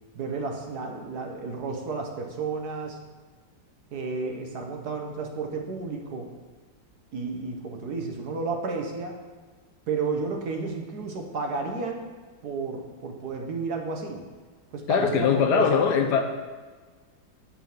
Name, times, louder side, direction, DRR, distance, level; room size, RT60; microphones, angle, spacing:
voice 1, 0.1-3.0 3.9-6.3 7.1-9.2 9.9-12.1 12.4-14.2 14.7-16.1, right 4 dB, 60° right, 3 dB, 1.4 m, -32 dB
voice 2, 14.9-16.2, left 6 dB, 65° left, 5 dB, 1.2 m, -21 dB
10.0 x 3.8 x 7.2 m, 1.4 s
omnidirectional pair, 2.1 m